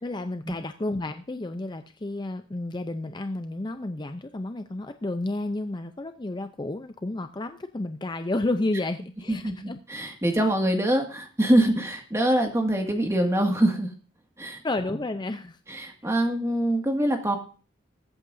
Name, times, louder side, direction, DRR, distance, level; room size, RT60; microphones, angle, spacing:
voice 1, 0.0-9.8 14.6-15.6 16.0-16.1, left 2 dB, 25° left, 8 dB, 0.6 m, -31 dB
voice 2, 9.3-13.9 14.4-14.6 15.7-17.4, right 1 dB, 15° right, 3 dB, 1.9 m, -24 dB
21.0 x 8.5 x 2.7 m, 0.37 s
head